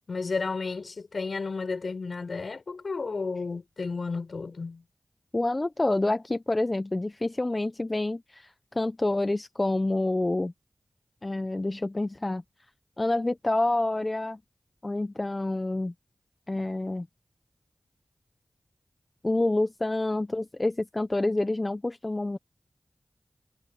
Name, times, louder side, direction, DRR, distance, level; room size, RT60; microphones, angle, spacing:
voice 1, 0.1-4.8, left 4 dB, 75° left, 7.2 m, -32 dB
voice 2, 5.3-10.5 11.2-12.4 13.0-14.4 14.8-15.9 16.5-17.1 19.2-22.4, left 2 dB, 35° left, 1.0 m, -28 dB
cardioid pair, 40°, 0 cm